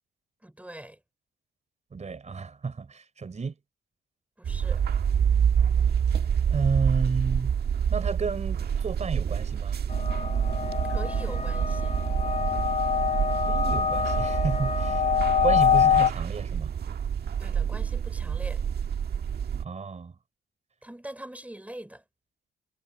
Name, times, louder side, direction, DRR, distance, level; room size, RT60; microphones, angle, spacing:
voice 1, 0.4-1.0 4.4-4.8 10.9-11.9 17.4-18.6 20.8-22.0, right 1 dB, 5° right, 5.3 m, -42 dB
voice 2, 1.9-3.5 6.5-7.5 7.9-9.8 13.3-15.0 15.4-16.7 19.6-20.2, right 5 dB, 35° right, 3.8 m, -31 dB
sound 1, 4.4-19.6, right 8 dB, 55° right, 1.5 m, -27 dB
sound 2, 9.9-16.1, left 8 dB, 35° left, 1.1 m, -25 dB
cardioid pair, 90°, 20 cm